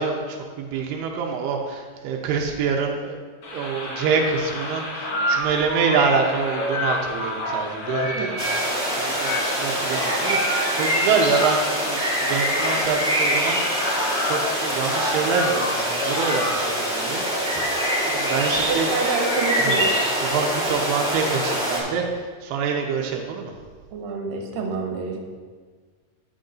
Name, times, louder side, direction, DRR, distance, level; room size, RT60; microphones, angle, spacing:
voice 1, 0.0-3.2 3.5-8.4 9.0-17.6 18.0-19.0 19.6-19.7 20.2-22.1 22.4-23.5, right 5 dB, 90° right, 1 dB, 2.8 m, -26 dB
sound 1, 3.4-16.9, left 1 dB, 85° left, 1.1 m, -29 dB
sound 2, 8.4-21.8, equal, ahead, 1.7 m, -24 dB
voice 2, 18.7-19.9 23.9-25.4, right 4 dB, 70° right, 1 dB, 2.6 m, -28 dB
12.5 x 8.6 x 2.6 m, 1.5 s
omnidirectional pair, 4.6 m